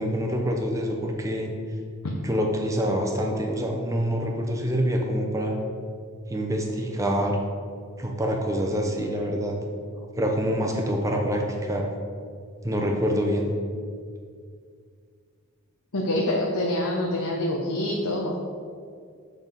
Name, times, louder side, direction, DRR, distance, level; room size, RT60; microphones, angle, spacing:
voice 1, 0.0-1.5 2.2-5.6 6.3-7.4 8.0-9.6 10.2-11.9 12.6-13.5, equal, 15° right, 1 dB, 0.7 m, -26 dB
voice 2, 15.9-18.3, left 1 dB, 85° left, -2 dB, 0.8 m, -26 dB
7.0 x 4.0 x 5.5 m, 2.2 s
head